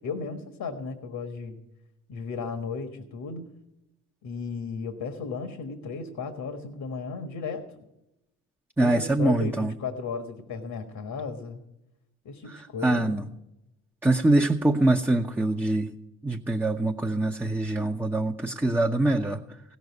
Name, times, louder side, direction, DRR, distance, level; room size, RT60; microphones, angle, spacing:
voice 1, 0.0-1.6 2.1-3.5 4.2-7.8 8.8-11.6 12.2-13.2, left 4 dB, 55° left, 8 dB, 1.6 m, -35 dB
voice 2, 8.8-9.7 12.8-13.2 14.0-15.9 16.2-19.4, right 2 dB, 5° right, 2 dB, 0.9 m, -24 dB
16.5 x 6.8 x 8.3 m, 0.89 s
hypercardioid pair, 45°, 43 cm